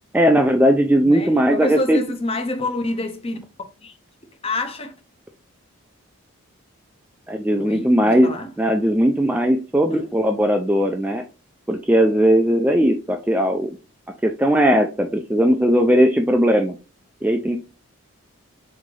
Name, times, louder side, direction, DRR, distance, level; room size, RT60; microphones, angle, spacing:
voice 1, 0.1-2.0 7.3-8.3 8.6-11.2 11.7-13.8 14.2-16.8 17.2-17.6, equal, 5° right, 0.3 m, -18 dB
voice 2, 1.0-3.4 3.8-4.0 4.4-4.9 7.5-8.5 9.9-10.0, left 2 dB, 25° left, 0.6 m, -27 dB
3.8 x 3.2 x 3.7 m
head